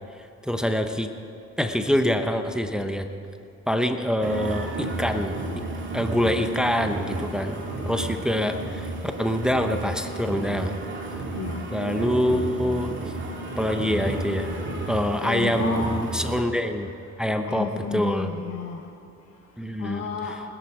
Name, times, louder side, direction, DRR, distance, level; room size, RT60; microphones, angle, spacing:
voice 1, 0.4-1.1 1.6-3.1 3.7-5.4 5.9-7.6 7.8-10.7 11.7-12.9 13.6-14.6 14.9-16.9 17.2-18.3 19.6-20.1, equal, ahead, 6 dB, 0.9 m, -25 dB
sound 1, 4.2-16.4, right 2 dB, 40° right, 2.5 m, -32 dB
voice 2, 11.3-11.7 15.2-15.9 17.4-18.9 19.7-20.4, left 5 dB, 55° left, 0 dB, 1.4 m, -32 dB
20.5 x 10.5 x 4.9 m, 2.5 s
cardioid pair, 90°, 30 cm